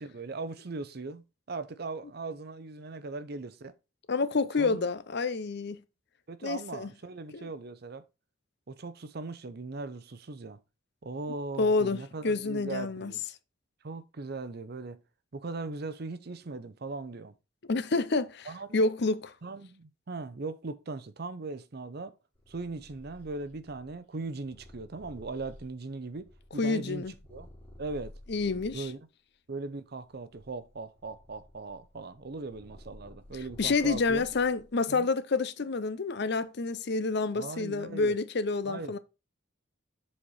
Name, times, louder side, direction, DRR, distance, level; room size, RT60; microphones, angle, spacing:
voice 1, 0.0-3.7 4.6-4.8 6.3-8.0 8.7-10.6 11.0-13.2 13.8-15.0 15.3-17.3 18.4-18.8 19.4-22.2 22.5-27.5 27.8-28.1 28.7-29.0 29.5-34.2 34.9-35.1 37.3-38.2 38.7-39.0, right 3 dB, 50° right, 0.6 m, -39 dB
voice 2, 4.1-5.8 6.4-6.9 7.3-7.5 11.6-12.0 12.2-13.1 17.7-18.5 18.7-19.3 26.6-27.1 28.3-28.9 33.6-39.0, left 3 dB, 55° left, 0.6 m, -28 dB
Purr, 22.3-28.9 29.5-34.8, left 1 dB, 10° left, 3.8 m, -53 dB
7.6 x 4.3 x 4.7 m
head